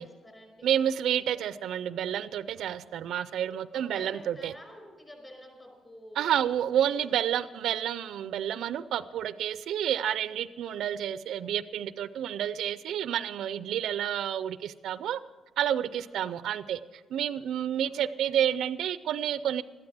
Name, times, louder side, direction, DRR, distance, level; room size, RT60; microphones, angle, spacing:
voice 1, 0.0-0.7 2.6-2.9 3.4-6.4 6.7-7.0 10.6-10.9 16.0-16.3 17.8-18.2, left 1 dB, 20° left, 3 dB, 5.5 m, -50 dB
voice 2, 0.6-4.5 6.2-15.2 15.6-16.8 17.1-19.6, right 10 dB, 75° right, 15 dB, 0.4 m, -29 dB
13.5 x 12.5 x 6.2 m, 1.3 s
cardioid pair, 90°, 0 cm